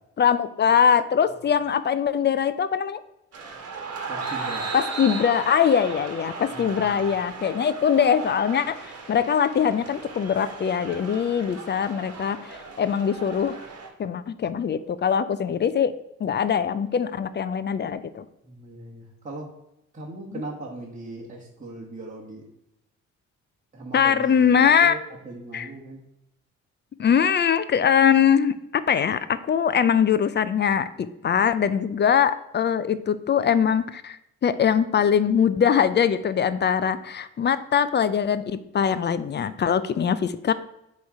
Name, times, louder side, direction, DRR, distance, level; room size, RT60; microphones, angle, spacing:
voice 1, 0.2-3.0 4.7-13.6 14.0-15.9 16.2-18.2 23.9-24.9 25.5-25.7 27.0-40.5, left 7 dB, 35° left, 14 dB, 0.4 m, -22 dB
sound 1, 3.3-13.9, right 4 dB, 55° right, 1.4 m, -36 dB
voice 2, 4.1-4.7 6.5-7.2 18.4-19.5 19.9-22.5 23.7-26.0, right 2 dB, 25° right, -3 dB, 1.4 m, -39 dB
8.1 x 3.2 x 4.8 m, 0.84 s
cardioid pair, 90°, 30 cm